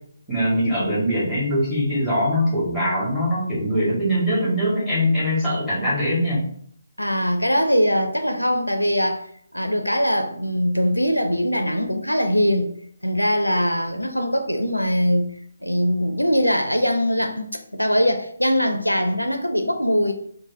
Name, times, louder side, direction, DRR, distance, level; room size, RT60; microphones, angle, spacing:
voice 1, 0.3-6.4, equal, ahead, 1.4 m, -22 dB
voice 2, 7.0-9.2 9.5-12.7 13.0-15.3 15.6-20.1, equal, 90° left, 0.4 m, -21 dB
3.2 x 2.1 x 2.7 m
figure-of-eight pair, 145°, 0 cm